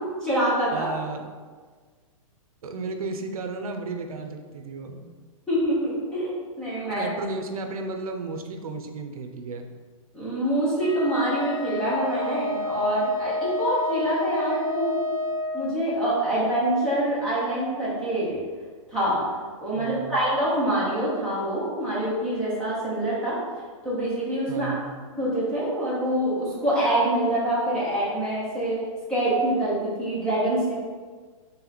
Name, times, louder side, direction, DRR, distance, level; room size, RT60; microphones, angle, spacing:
voice 1, 0.2-0.9 5.5-7.1 10.1-15.0 15.5-18.4 18.9-19.2 19.6-23.4 23.8-24.7 25.1-28.8 29.1-30.7, right 1 dB, 5° left, -10 dB, 0.7 m, -25 dB
voice 2, 0.7-1.3 2.6-5.0 6.9-9.6 19.7-20.2 24.5-24.9, right 3 dB, 85° right, 5 dB, 0.5 m, -33 dB
Wind instrument woodwind instrument, 10.8-15.6, left 2 dB, 55° left, 1.1 m, -30 dB
3.3 x 3.0 x 3.9 m, 1.5 s
hypercardioid pair, 170°, 18 cm